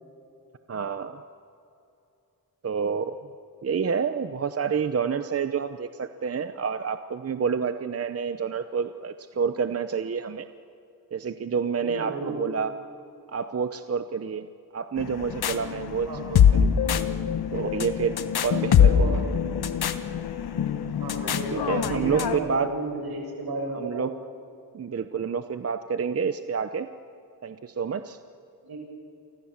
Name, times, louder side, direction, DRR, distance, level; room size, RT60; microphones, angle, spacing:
voice 1, 0.7-1.2 2.6-3.2 3.6-10.5 11.1-12.7 13.3-14.5 14.7-16.7 17.5-19.1 21.5-22.7 23.7-24.1 24.7-26.9 27.4-28.2, right 6 dB, 40° right, 10 dB, 0.9 m, -28 dB
voice 2, 11.8-12.4 16.1-16.2 18.6-18.7 18.9-19.2 21.0-24.1 28.6-28.8, right 3 dB, 75° right, 1 dB, 7.0 m, -33 dB
sound 1, 15.0-22.4, left 8 dB, 70° left, 1.3 m, -23 dB
29.5 x 25.0 x 7.4 m, 2.8 s
wide cardioid pair, 110°, 38 cm